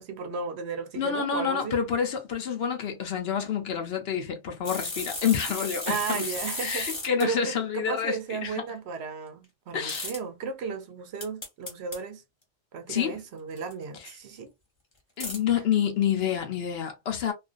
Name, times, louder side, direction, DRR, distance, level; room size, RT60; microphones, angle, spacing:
voice 1, 0.0-1.7 5.8-6.9 7.2-12.2 12.7-14.5, right 5 dB, 70° right, 0.9 m, -34 dB
voice 2, 1.0-6.3 6.6-8.6 9.7-10.1 12.9-13.2 14.0-14.1 15.2-17.3, left 8 dB, 65° left, 0.8 m, -28 dB
Football Clacker, 4.6-7.3 9.9-10.2 11.2-12.0 13.6-13.7 15.2-15.4, left 2 dB, 25° left, 0.9 m, -34 dB
2.4 x 2.3 x 2.4 m
omnidirectional pair, 1.2 m